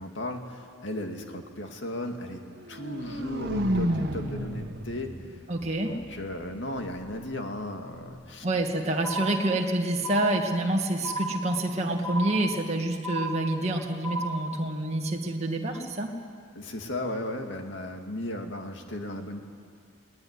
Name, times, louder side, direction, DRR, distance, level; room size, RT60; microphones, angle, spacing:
voice 1, 0.0-2.4 2.7-5.3 5.8-8.5 16.6-19.4, left 1 dB, 65° left, 4 dB, 2.2 m, -35 dB
sound 1, 2.6-6.6, equal, 55° right, 1.9 m, -31 dB
voice 2, 5.5-6.0 8.4-16.1, right 1 dB, 35° right, 0 dB, 2.2 m, -27 dB
sound 2, 9.0-9.7 10.0-10.7 11.0-11.7 12.0-12.7 13.0-13.7 14.0-14.7, right 1 dB, ahead, 3.8 m, -34 dB
20.5 x 19.5 x 9.7 m, 2.2 s
head